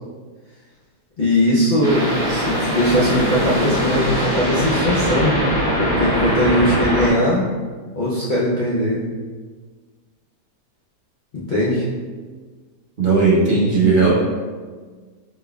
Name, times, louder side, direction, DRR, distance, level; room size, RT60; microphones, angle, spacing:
voice 1, 1.2-5.4 5.8-7.4 8.0-9.0 11.3-11.8, left 1 dB, 70° left, -9 dB, 0.4 m, -19 dB
sound 1, 1.8-7.1, equal, 30° right, 1.3 m, -21 dB
voice 2, 13.0-14.1, right 4 dB, 45° right, -5 dB, 0.7 m, -16 dB
4.1 x 3.8 x 2.3 m, 1.5 s
omnidirectional pair, 1.8 m